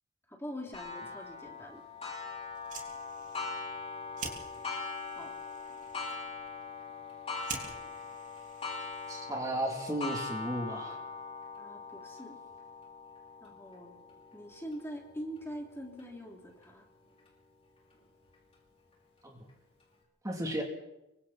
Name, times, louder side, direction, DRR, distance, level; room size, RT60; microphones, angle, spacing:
voice 1, 0.3-1.8 5.1-5.3 11.6-12.4 13.4-14.0 14.3-16.9, equal, 10° left, 0 dB, 3.2 m, -43 dB
Clock, 0.7-16.0 16.6-16.7 17.3-17.4 18.3-18.4, left 4 dB, 30° left, 5.5 m, -42 dB
Fire, 2.5-9.4, right 4 dB, 35° right, 3.9 m, -47 dB
voice 2, 9.1-11.0 19.2-19.4 20.2-20.6, right 1 dB, 15° right, 0 dB, 3.2 m, -34 dB
27.5 x 24.5 x 4.3 m, 0.91 s
head